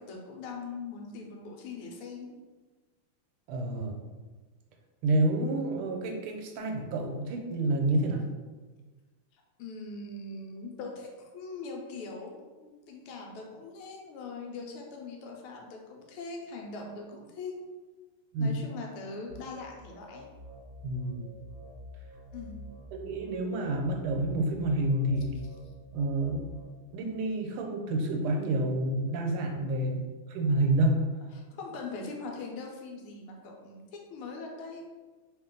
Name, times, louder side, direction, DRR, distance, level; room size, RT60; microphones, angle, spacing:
voice 1, 0.0-2.3 9.3-17.6 18.4-20.2 22.3-22.6 31.3-34.9, left 3 dB, 90° left, 1 dB, 1.6 m, -41 dB
voice 2, 3.5-4.0 5.0-8.3 18.3-18.6 20.8-21.2 22.9-25.3 25.9-26.5 26.9-30.0 30.3-31.0, right 1 dB, 80° right, 3 dB, 1.5 m, -28 dB
sound 1, 19.3-26.6, left 2 dB, 30° right, 1.1 m, -48 dB
3.2 x 2.9 x 3.7 m, 1.3 s
omnidirectional pair, 2.4 m